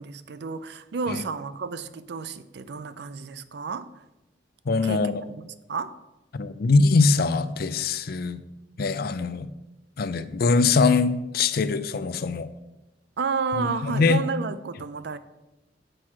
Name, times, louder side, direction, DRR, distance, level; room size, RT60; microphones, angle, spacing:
voice 1, 0.0-3.9 4.8-5.1 5.4-6.0 13.2-15.2, right 5 dB, 70° right, 0.5 m, -31 dB
voice 2, 4.7-5.1 6.3-8.4 8.8-9.5 10.0-12.5 13.6-14.2, left 4 dB, 60° left, 0.5 m, -22 dB
7.7 x 4.5 x 6.2 m
head